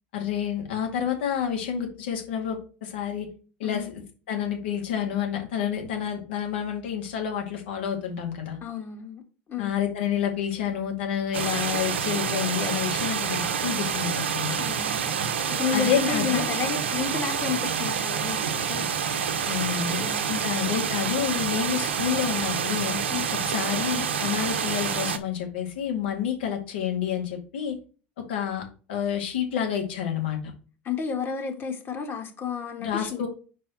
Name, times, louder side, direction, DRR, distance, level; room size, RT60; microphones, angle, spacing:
voice 1, 0.1-3.3 3.6-4.0 4.3-8.6 9.6-14.6 15.7-16.5 19.1-20.0 20.3-23.0 23.5-27.8 28.3-28.6 28.9-30.4 32.8-33.3, left 9 dB, 75° left, 2.1 m, -29 dB
voice 2, 8.6-9.2 9.5-9.7 14.6-15.2 15.5-18.8 20.0-20.5 23.1-23.3 30.8-33.3, left 6 dB, 40° left, 1.8 m, -31 dB
sound 1, 11.3-25.2, right 7 dB, 80° right, 0.7 m, -28 dB
4.6 x 4.3 x 5.7 m
hypercardioid pair, 75°, 6 cm